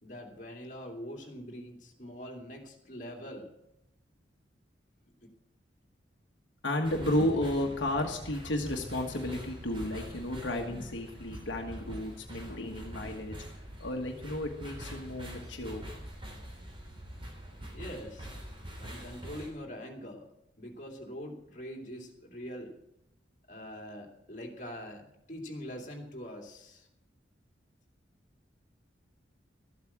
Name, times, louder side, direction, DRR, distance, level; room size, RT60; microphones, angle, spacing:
voice 1, 0.0-3.5 17.7-18.3 18.8-20.3 20.6-22.7 23.5-26.9, equal, 40° left, 1 dB, 2.7 m, -43 dB
voice 2, 6.6-13.4 13.8-15.8, left 1 dB, 80° left, 1 dB, 1.5 m, -33 dB
sound 1, 6.8-19.5, equal, 25° right, 3.3 m, -44 dB
14.0 x 8.4 x 7.3 m, 0.84 s
head